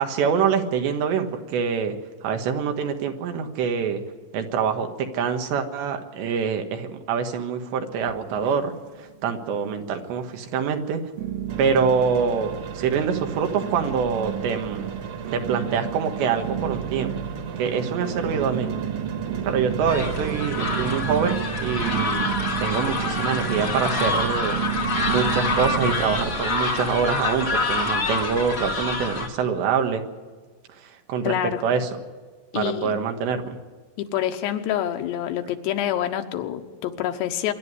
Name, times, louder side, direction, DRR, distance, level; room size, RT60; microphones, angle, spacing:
voice 1, 0.0-2.0 2.2-4.0 4.3-8.7 9.0-11.0 11.6-14.9 15.3-17.3 17.6-18.7 19.4-22.3 22.6-24.6 25.1-30.0 30.8-31.4 31.6-31.9 32.5-33.6, right 6 dB, 85° right, 5 dB, 3.7 m, -25 dB
Strings sounds of piano, 8.0-9.0 9.2-9.9 10.4-10.5 11.2-26.4, right 9 dB, 70° right, 3.2 m, -31 dB
sound 1, 11.5-20.4, right 4 dB, 50° right, 2.3 m, -39 dB
sound 2, 19.9-29.3, left 3 dB, 55° left, 0.9 m, -27 dB
voice 2, 31.2-31.6 32.5-32.9 34.0-37.5, left 11 dB, 80° left, 7 dB, 3.2 m, -27 dB
25.0 x 11.0 x 9.7 m, 1.4 s
omnidirectional pair, 5.0 m